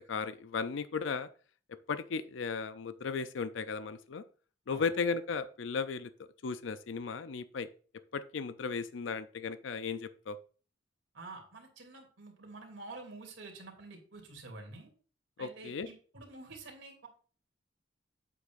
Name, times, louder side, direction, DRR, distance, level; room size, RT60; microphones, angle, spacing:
voice 1, 0.1-1.3 1.9-4.2 4.7-6.1 6.4-7.7 8.1-10.4 15.4-15.9, left 5 dB, 70° left, 12 dB, 0.5 m, -35 dB
voice 2, 11.1-14.9 15.4-17.1, right 3 dB, 70° right, 1 dB, 2.9 m, -48 dB
8.4 x 8.2 x 2.6 m, 0.40 s
head